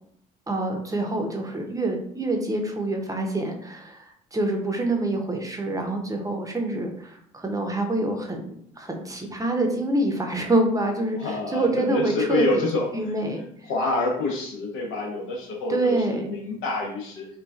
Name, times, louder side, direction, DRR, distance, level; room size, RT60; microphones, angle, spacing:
voice 1, 0.5-8.4 8.8-12.6 12.9-13.5 15.7-16.3, right 2 dB, 15° right, 3 dB, 0.7 m, -26 dB
voice 2, 11.2-13.2 13.6-17.3, left 3 dB, 70° left, 0 dB, 0.8 m, -27 dB
3.1 x 2.3 x 2.4 m, 0.67 s
hypercardioid pair, 55°, 21 cm